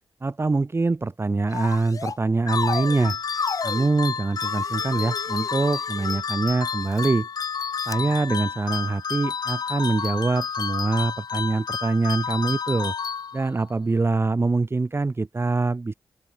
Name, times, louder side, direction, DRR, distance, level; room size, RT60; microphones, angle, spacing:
voice 1, 0.2-3.2 3.6-7.3 7.9-12.9 13.3-15.9, right 3 dB, 35° right, 6.1 m, -24 dB
sound 1, 1.5-2.2 2.5-3.9 4.4-6.2 6.8-7.1 7.8-8.0, left 5 dB, 50° left, 2.1 m, -32 dB
sound 2, 2.5-13.7, left 6 dB, 65° left, 4.8 m, -30 dB
open air
cardioid pair, 65°, 7 cm